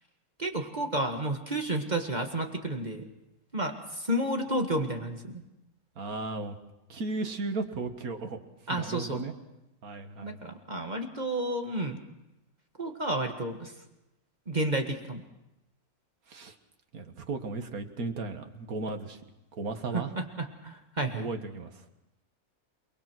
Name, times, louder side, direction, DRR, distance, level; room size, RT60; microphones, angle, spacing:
voice 1, 0.4-3.0 3.5-5.4 8.7-9.2 10.2-12.0 12.8-13.7 14.5-15.2 19.9-21.3, right 1 dB, 30° right, 4 dB, 1.8 m, -31 dB
voice 2, 6.0-6.6 6.9-8.4 8.7-9.3 9.8-10.5 16.3-16.5 16.9-19.2 19.5-20.1 21.1-21.8, right 3 dB, 75° right, 6 dB, 2.1 m, -35 dB
28.5 x 20.5 x 6.2 m, 0.92 s
omnidirectional pair, 1.6 m